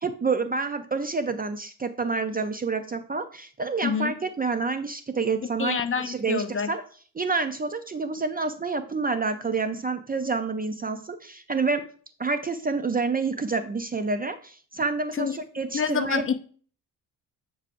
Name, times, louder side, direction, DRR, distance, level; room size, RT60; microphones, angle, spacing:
voice 1, 0.0-6.8 7.2-11.9 12.2-16.3, right 4 dB, 20° right, 0.4 m, -28 dB
voice 2, 3.8-4.1 5.6-6.7 15.1-15.4 15.7-16.3, left 6 dB, 30° left, 0.5 m, -27 dB
8.1 x 4.7 x 2.5 m
cardioid pair, 85°, 41 cm